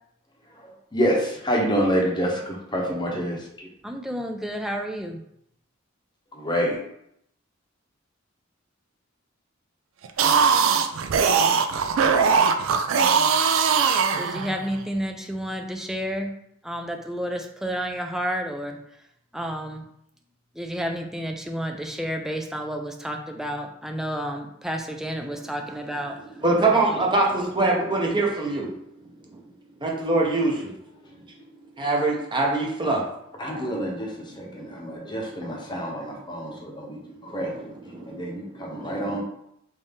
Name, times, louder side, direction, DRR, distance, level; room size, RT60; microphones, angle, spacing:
voice 1, 0.5-3.7 6.3-6.8 33.4-37.0 37.2-37.7 38.1-39.2, equal, 25° left, 0.9 m, -27 dB
voice 2, 3.8-5.2 14.2-16.3 16.6-18.8 19.3-19.9 20.5-26.4 26.9-27.0, equal, ahead, 0.4 m, -31 dB
sound 1, 10.0-14.8, right 6 dB, 75° right, 0.4 m, -20 dB
voice 3, 26.1-29.4 29.7-30.8 31.1-33.1 33.5-35.6 36.2-39.2, right 2 dB, 25° right, 0.8 m, -26 dB
3.5 x 2.6 x 3.5 m
head